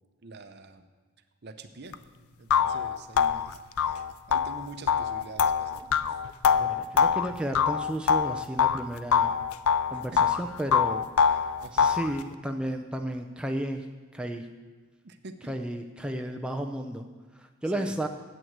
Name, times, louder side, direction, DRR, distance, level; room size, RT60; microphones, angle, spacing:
voice 1, 0.2-0.8 1.4-2.0 2.4-5.8 6.1-6.2 11.3-11.9 15.0-15.5 17.7-17.9, right 2 dB, 50° right, 9 dB, 0.7 m, -45 dB
sound 1, 1.9-2.0 2.5-8.8 9.1-10.4 10.7-12.1, left 7 dB, 85° left, 0.5 m, -24 dB
voice 2, 6.5-9.4 9.9-11.1 11.7-13.9 14.1-14.5 15.5-17.0 17.4-18.1, right 1 dB, 5° right, 4 dB, 0.4 m, -33 dB
9.1 x 7.9 x 7.9 m, 1.3 s
head